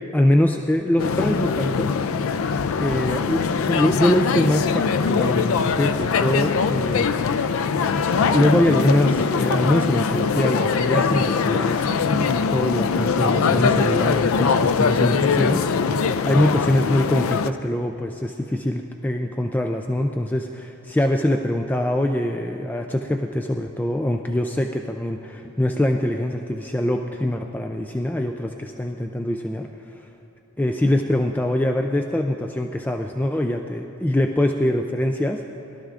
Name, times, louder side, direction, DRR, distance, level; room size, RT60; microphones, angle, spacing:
voice 1, 0.1-1.9 2.8-7.1 8.3-11.9 12.2-29.7 29.9-30.0 30.6-35.4, left 1 dB, 10° left, 3 dB, 0.3 m, -23 dB
sound 1, 1.0-17.5, left 5 dB, 80° left, 0.4 m, -22 dB
21.0 x 12.5 x 2.5 m, 2.7 s
head